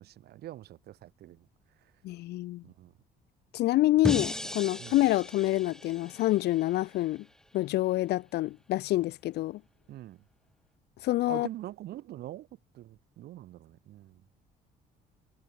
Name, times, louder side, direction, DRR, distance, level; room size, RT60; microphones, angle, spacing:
voice 1, 0.0-1.4 2.6-2.9 4.8-4.9 9.9-10.2 11.3-12.5 12.7-14.2, right 14 dB, 70° right, 4.5 m, -44 dB
voice 2, 2.0-2.6 3.5-7.3 7.5-9.6 11.0-11.5, left 16 dB, 75° left, 1.8 m, -27 dB
sound 1, 4.0-7.2, left 1 dB, 5° left, 1.5 m, -37 dB
cardioid pair, 110°, 17 cm